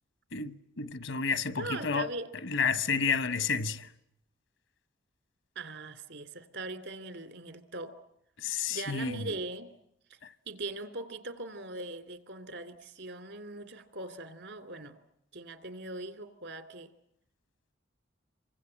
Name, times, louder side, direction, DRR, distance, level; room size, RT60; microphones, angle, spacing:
voice 1, 0.3-2.1 2.4-3.9 8.4-9.3 10.2-10.3, left 5 dB, 80° left, 1.1 m, -31 dB
voice 2, 1.5-2.3 5.5-7.9 8.7-9.7 10.1-10.2 10.5-15.0 15.3-16.9, right 2 dB, 70° right, 2.6 m, -40 dB
27.5 x 24.0 x 8.7 m
head